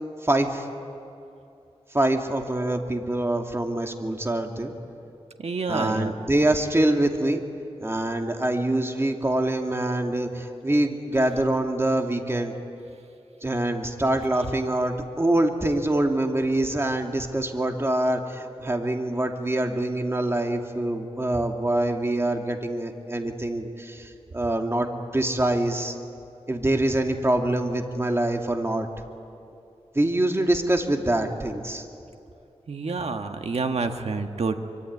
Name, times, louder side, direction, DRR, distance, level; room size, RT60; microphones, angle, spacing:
voice 1, 0.2-0.7 1.9-4.7 5.7-7.4 7.8-12.5 13.4-24.9 25.1-26.0 26.5-28.9 29.9-31.8, right 1 dB, 25° right, 3 dB, 2.5 m, -25 dB
voice 2, 5.4-6.1 32.7-34.6, right 4 dB, 75° right, 6 dB, 1.6 m, -28 dB
25.0 x 24.5 x 9.6 m, 2.7 s
wide cardioid pair, 75°, 11 cm